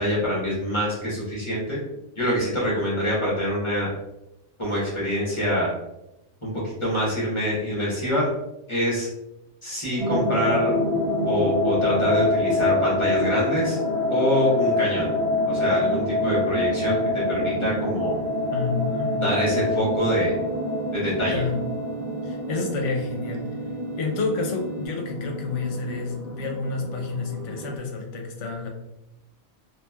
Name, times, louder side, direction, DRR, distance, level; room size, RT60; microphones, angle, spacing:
voice 1, 0.0-1.8 2.2-3.9 4.6-5.7 6.4-8.3 8.7-9.1 9.6-10.7 11.2-13.8 14.1-15.1 15.5-18.2 19.2-20.3 20.9-21.4, equal, 25° left, -7 dB, 1.1 m, -25 dB
sound 1, 10.0-27.8, left 2 dB, 50° right, 0.4 m, -26 dB
sound 2, 14.6-24.9, right 4 dB, 20° right, 0.7 m, -38 dB
voice 2, 18.5-19.3 21.3-21.6 22.2-23.5 23.9-28.7, left 4 dB, 75° left, 2 dB, 0.9 m, -29 dB
3.0 x 2.6 x 2.2 m, 0.89 s
omnidirectional pair, 1.2 m